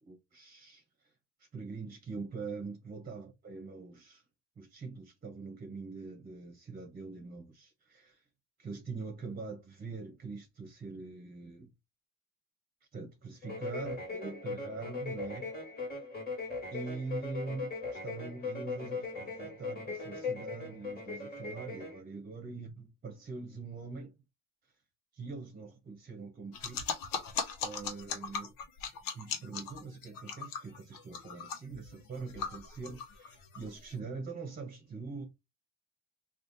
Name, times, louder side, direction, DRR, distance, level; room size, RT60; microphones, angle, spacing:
voice 1, 0.0-1.1 1.4-4.2 4.6-8.2 8.6-11.7 12.9-15.5 16.7-24.1 24.6-24.7 25.1-27.0 27.6-28.5 29.1-35.3, right 4 dB, 30° right, 1.0 m, -43 dB
sound 1, 13.4-22.0, left 4 dB, 30° left, 1.9 m, -39 dB
sound 2, 26.5-33.9, left 6 dB, 85° left, 0.9 m, -39 dB
3.3 x 2.5 x 4.0 m
cardioid pair, 130°, 33 cm